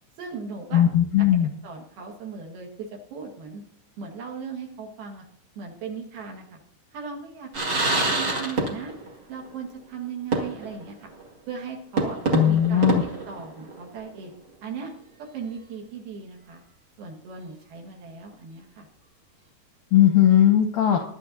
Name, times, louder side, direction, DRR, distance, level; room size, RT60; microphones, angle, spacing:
voice 1, 0.2-0.9 1.2-1.3 1.6-3.6 4.0-5.2 5.6-6.6 6.9-7.6 7.9-8.9 9.3-11.1 11.5-12.2 12.5-14.3 14.6-14.9 15.2-16.6 17.0-18.9, right 5 dB, 60° right, 1 dB, 3.3 m, -37 dB
voice 2, 0.7-1.5 12.3-13.0 19.9-21.0, left 11 dB, 75° left, 4 dB, 2.0 m, -18 dB
sound 1, 7.5-9.1 9.4-9.5 10.3-10.8 11.2-11.3 12.0-13.9, right 3 dB, 40° right, 1.5 m, -26 dB
21.5 x 11.0 x 2.7 m, 0.67 s
omnidirectional pair, 5.3 m